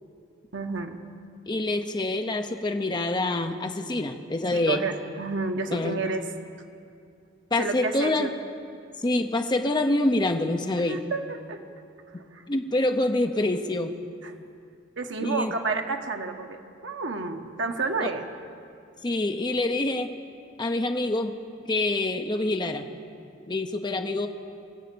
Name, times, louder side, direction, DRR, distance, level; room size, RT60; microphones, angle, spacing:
voice 1, 0.5-1.0 4.5-6.2 7.6-8.3 10.8-11.6 12.2-12.4 14.2-14.3 15.0-18.3, right 3 dB, 65° right, 4 dB, 1.2 m, -30 dB
voice 2, 1.5-4.8 5.7-6.0 7.5-8.3 9.0-11.0 12.5-13.9 15.2-15.5 18.0-18.1 19.0-20.1 20.6-21.3 21.7-22.9 23.5-24.3, left 2 dB, 25° left, 5 dB, 0.7 m, -26 dB
24.5 x 8.3 x 6.9 m, 2.4 s
head